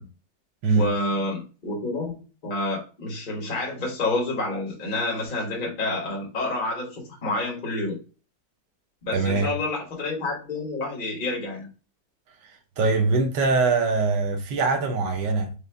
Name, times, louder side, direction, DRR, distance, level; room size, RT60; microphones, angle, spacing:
voice 1, 0.7-2.2 2.4-8.0 9.0-11.7, left 2 dB, 30° left, 1.5 m, -28 dB
voice 2, 9.1-9.5 12.8-15.5, right 3 dB, 80° right, 1.6 m, -22 dB
5.0 x 2.5 x 3.3 m
omnidirectional pair, 1.9 m